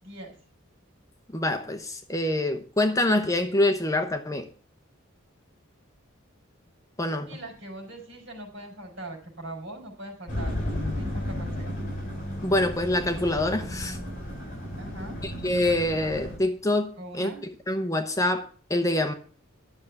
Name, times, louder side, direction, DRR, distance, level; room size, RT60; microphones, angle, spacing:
voice 1, 0.0-0.4 7.3-10.6 10.9-11.7 14.8-15.2 17.0-17.4, right 1 dB, 60° right, 4.7 m, -41 dB
voice 2, 1.3-4.5 7.0-7.3 12.4-14.0 15.2-17.3 17.7-19.1, left 1 dB, 15° left, 0.8 m, -25 dB
sound 1, 10.3-16.4, left 1 dB, 40° left, 6.3 m, -33 dB
11.5 x 6.6 x 7.0 m
head